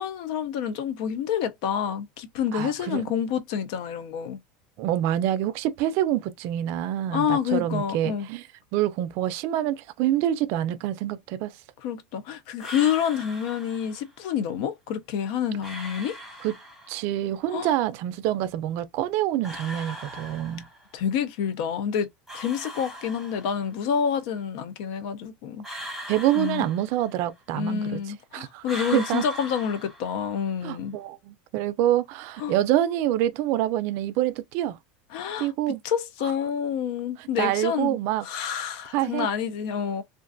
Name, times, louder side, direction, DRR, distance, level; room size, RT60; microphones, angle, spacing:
voice 1, 0.0-4.4 7.1-8.3 11.8-16.2 17.5-17.7 20.9-22.1 22.3-25.6 26.3-26.7 27.5-31.0 32.4-32.5 35.1-40.0, left 8 dB, 65° left, 0.4 m, -28 dB
voice 2, 2.5-3.0 4.8-8.4 8.7-11.5 16.4-16.5 16.9-20.7 26.1-28.0 28.3-28.6 28.9-29.3 30.6-34.8 35.4-35.8 37.2-38.3 38.9-39.3, right 12 dB, 55° right, 0.4 m, -26 dB
sound 1, 12.6-14.1 15.6-17.1 19.4-21.0 22.3-23.8 25.6-27.4 28.6-30.5, equal, ahead, 1.1 m, -40 dB
2.4 x 2.3 x 2.5 m
supercardioid pair, 135°, 5 cm